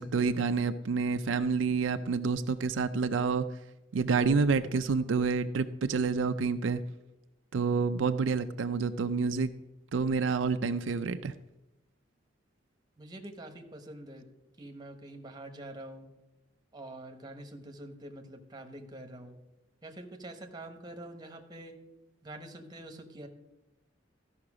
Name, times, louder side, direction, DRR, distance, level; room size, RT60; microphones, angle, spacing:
voice 1, 0.0-3.5 3.9-6.8 7.5-9.5 9.9-11.3, right 4 dB, 80° right, 9 dB, 0.4 m, -28 dB
voice 2, 13.0-14.3 14.6-16.1 16.7-19.4 19.8-21.7 22.2-23.3, right 1 dB, 20° right, 5 dB, 1.1 m, -45 dB
13.5 x 5.8 x 4.9 m, 1.0 s
head